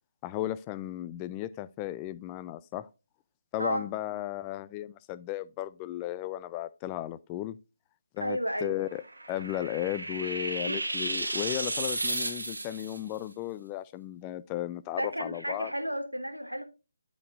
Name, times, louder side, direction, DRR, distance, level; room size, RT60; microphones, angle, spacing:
voice 1, 0.2-2.9 3.5-7.6 8.1-9.0 9.3-15.7, left 14 dB, 15° left, 0.3 m, -35 dB
voice 2, 8.2-8.7 10.2-10.8 15.0-16.6, equal, 85° right, 1.4 m, -33 dB
sound 1, 8.8-13.0, right 2 dB, 70° right, 2.0 m, -33 dB
12.5 x 5.2 x 2.6 m
figure-of-eight pair, 145°, 0 cm